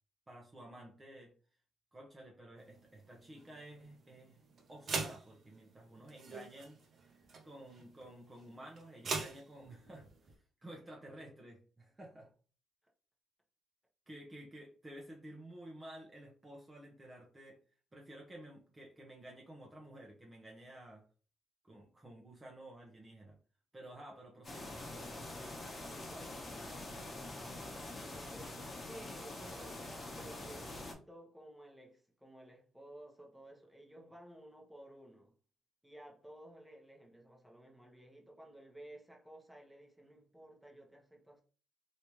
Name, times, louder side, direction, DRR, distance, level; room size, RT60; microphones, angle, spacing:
voice 1, 0.3-1.3 1.9-4.4 4.7-6.8 7.4-12.3 14.1-17.6 17.9-21.0 21.6-23.4 23.7-24.8 28.1-28.3, right 1 dB, 20° right, 0.8 m, -52 dB
sound 1, 2.6-10.3, right 4 dB, 55° right, 0.9 m, -45 dB
sound 2, 24.4-30.9, left 2 dB, 30° left, 1.2 m, -45 dB
voice 2, 25.3-27.4 27.9-35.3 35.8-41.4, right 1 dB, 5° right, 1.1 m, -55 dB
3.3 x 2.8 x 3.1 m
cardioid pair, 90°, 0 cm